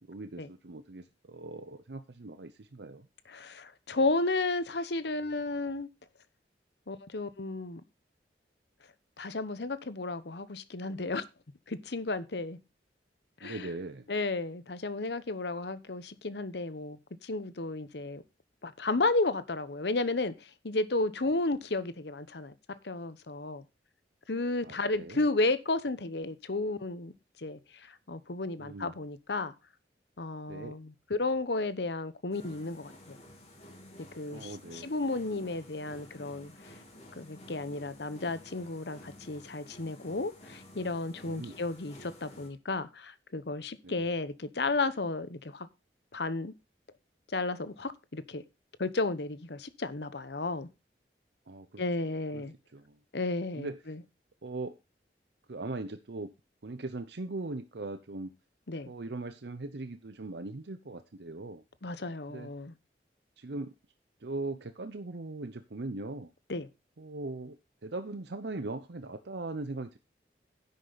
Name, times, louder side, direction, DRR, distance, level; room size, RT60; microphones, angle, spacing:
voice 1, 0.0-3.1 13.4-14.0 24.6-25.2 28.6-28.9 30.5-30.8 34.3-34.9 41.3-41.6 43.8-44.0 51.5-52.4 52.7-53.0 53.6-53.8 54.4-54.8 55.5-56.3 56.6-58.3 58.9-61.6 62.3-62.5 63.4-63.7 64.2-66.3 67.0-67.6 67.8-70.0, right 2 dB, 70° right, 0.8 m, -40 dB
voice 2, 3.3-5.9 6.9-7.8 9.2-11.2 11.7-12.6 13.4-13.7 14.1-18.2 18.6-22.5 22.8-23.6 24.3-27.1 27.4-29.5 30.2-33.2 34.1-36.5 37.2-45.7 46.1-46.5 47.3-48.4 48.8-50.7 51.8-52.5 53.1-54.0 58.7-58.9 61.8-62.7 66.5-66.7, left 2 dB, 70° left, 0.9 m, -33 dB
sound 1, 32.3-42.5, left 1 dB, 35° left, 3.2 m, -52 dB
10.5 x 8.2 x 4.0 m
head